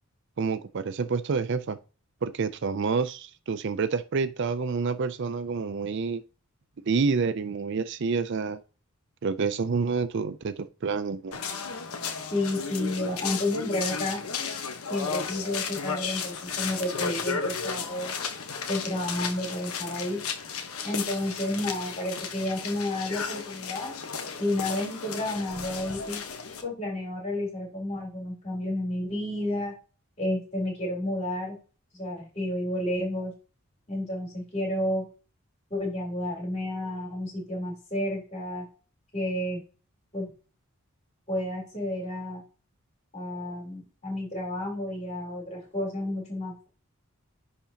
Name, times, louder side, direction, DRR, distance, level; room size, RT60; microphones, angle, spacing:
voice 1, 0.4-1.8 2.2-6.2 6.8-8.6 9.2-11.4, right 5 dB, 55° right, 0.4 m, -28 dB
sound 1, 11.3-26.6, left 6 dB, 80° left, 1.2 m, -34 dB
voice 2, 12.3-14.2 14.9-18.2 18.7-20.2 20.8-23.9 24.4-26.2 26.6-29.7 30.2-31.6 31.9-33.3 33.9-35.0 35.7-38.7 39.1-39.6 40.1-40.3 41.3-42.4 43.1-46.7, left 1 dB, 30° left, 3.7 m, -31 dB
10.5 x 4.2 x 2.9 m
head